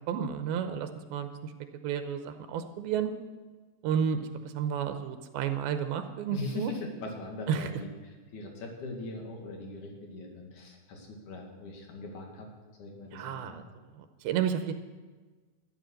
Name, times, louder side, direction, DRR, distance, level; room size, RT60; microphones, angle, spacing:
voice 1, 0.0-1.5 1.8-3.1 3.8-4.3 4.6-6.7 7.5-7.7 13.1-13.6 14.0-14.7, right 8 dB, 85° right, 8 dB, 2.7 m, -31 dB
voice 2, 6.3-12.5 12.8-13.6, left 2 dB, 55° left, 1 dB, 3.4 m, -40 dB
13.0 x 12.0 x 6.5 m, 1.4 s
omnidirectional pair, 4.4 m